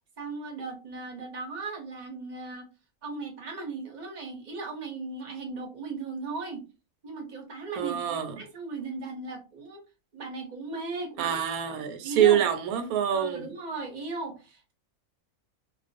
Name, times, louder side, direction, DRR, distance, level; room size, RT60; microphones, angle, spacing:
voice 1, 0.2-2.7 3.0-6.6 7.0-9.8 10.1-11.4 12.0-12.4 13.1-14.7, right 3 dB, 45° right, 0.6 m, -37 dB
voice 2, 7.8-8.4 11.2-13.5, right 9 dB, 80° right, 1.0 m, -25 dB
2.4 x 2.2 x 2.5 m
omnidirectional pair, 1.5 m